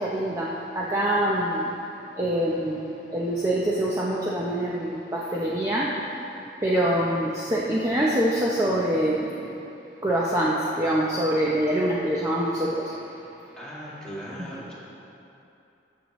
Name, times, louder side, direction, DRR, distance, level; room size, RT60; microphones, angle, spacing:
voice 1, 0.0-1.8 2.1-6.2 6.6-9.6 10.0-13.5, right 1 dB, 15° right, -6 dB, 0.7 m, -25 dB
voice 2, 13.6-14.7, equal, 5° left, -10 dB, 2.2 m, -38 dB
14.0 x 6.2 x 3.1 m, 2.8 s
head